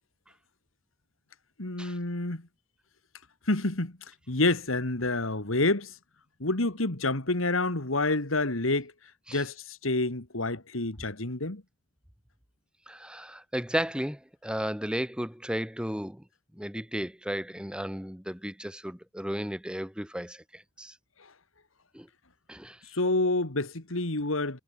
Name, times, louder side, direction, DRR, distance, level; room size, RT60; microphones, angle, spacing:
voice 1, 1.6-2.5 3.5-4.0 4.3-5.9 6.4-8.9 9.3-11.6 22.9-24.6, left 2 dB, 80° left, 2.6 m, -28 dB
voice 2, 12.9-16.2 16.6-20.9 21.9-22.1 22.5-22.8, equal, 5° right, 2.1 m, -34 dB
head